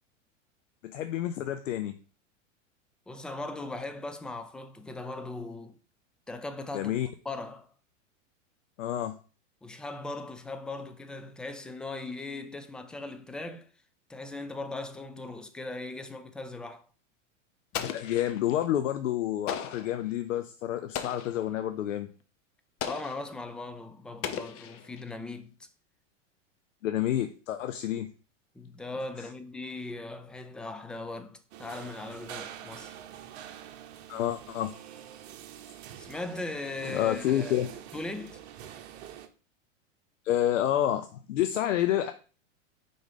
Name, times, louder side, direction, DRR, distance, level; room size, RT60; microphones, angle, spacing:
voice 1, 0.8-2.0 6.7-7.1 8.8-9.2 17.8-22.1 26.8-28.1 29.2-29.3 34.1-34.7 36.9-37.7 40.3-42.1, left 12 dB, 80° left, 0.7 m, -29 dB
voice 2, 3.1-5.8 6.3-6.9 7.2-7.7 9.6-13.7 14.1-16.9 22.9-25.7 28.5-33.0 36.0-37.6 37.9-38.4, left 2 dB, ahead, 0.3 m, -39 dB
Explosion, 17.7-18.6 19.5-20.0 20.9-21.5 22.8-23.3 24.2-25.1, left 9 dB, 35° left, 0.7 m, -37 dB
sound 1, 31.5-39.3, right 10 dB, 60° right, 0.9 m, -46 dB
5.2 x 4.0 x 5.0 m
hypercardioid pair, 105°, 38 cm